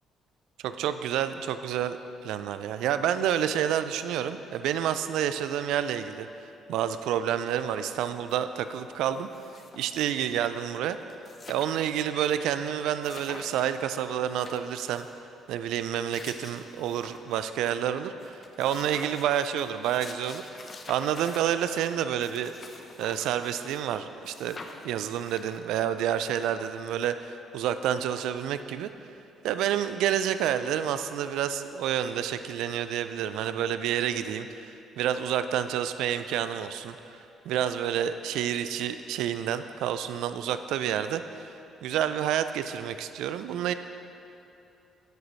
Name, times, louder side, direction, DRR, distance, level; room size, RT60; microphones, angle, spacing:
voice 1, 0.6-2.0 2.2-9.3 9.8-11.0 11.5-15.1 15.5-20.5 20.9-22.5 23.0-24.6 24.8-28.9 29.4-37.2 37.5-41.5 41.8-43.7, right 10 dB, 75° right, 11 dB, 0.3 m, -29 dB
Scrolling in book - actions, 8.3-8.4 8.6-10.3 10.8-10.9 11.0-12.3 12.6-12.7 13.0-13.8 14.2-15.1 15.8-17.4 17.8-17.9 18.2-23.9 24.2-25.8, left 3 dB, 45° left, 0.7 m, -47 dB
10.5 x 5.0 x 4.1 m, 2.8 s
hypercardioid pair, 55°, 0 cm